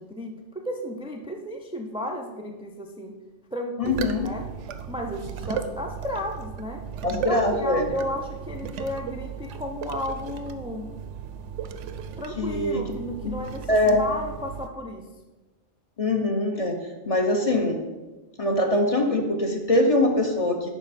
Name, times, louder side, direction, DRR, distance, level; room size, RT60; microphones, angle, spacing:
voice 1, 0.0-3.1 3.5-4.4 4.9-6.8 7.3-10.9 12.2-15.0, left 1 dB, 10° right, 2 dB, 0.4 m, -33 dB
voice 2, 3.8-4.3 7.0-7.9 12.4-12.8 13.2-13.3 13.7-14.0 16.0-16.8 17.1-17.8 18.4-20.7, left 1 dB, 35° left, 3 dB, 0.7 m, -23 dB
sound 1, 3.8-14.7, right 7 dB, 80° right, 0.9 m, -36 dB
11.0 x 4.4 x 4.1 m, 1.2 s
omnidirectional pair, 1.2 m